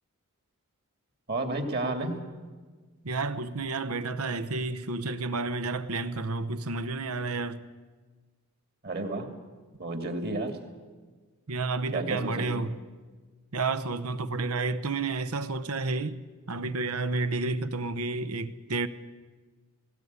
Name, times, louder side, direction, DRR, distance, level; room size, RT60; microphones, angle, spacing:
voice 1, 1.3-2.2 8.8-9.3 9.8-10.6 11.9-12.7, right 2 dB, 45° right, 2.6 m, -31 dB
voice 2, 3.0-7.6 11.5-12.7 13.5-16.2 16.5-18.9, right 3 dB, 80° right, 1.0 m, -30 dB
19.0 x 17.5 x 9.6 m
head